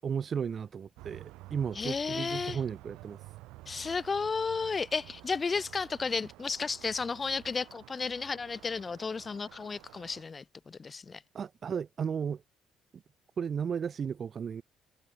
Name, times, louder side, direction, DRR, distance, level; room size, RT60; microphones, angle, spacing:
voice 1, 0.0-3.3 11.3-12.4 12.9-13.0 13.4-14.6, right 7 dB, 45° right, 0.4 m, -34 dB
sound 1, 1.0-10.2, right 19 dB, 75° right, 3.2 m, -51 dB
voice 2, 1.8-2.6 3.7-11.2, left 4 dB, 35° left, 2.0 m, -33 dB
hypercardioid pair, 55°, 0 cm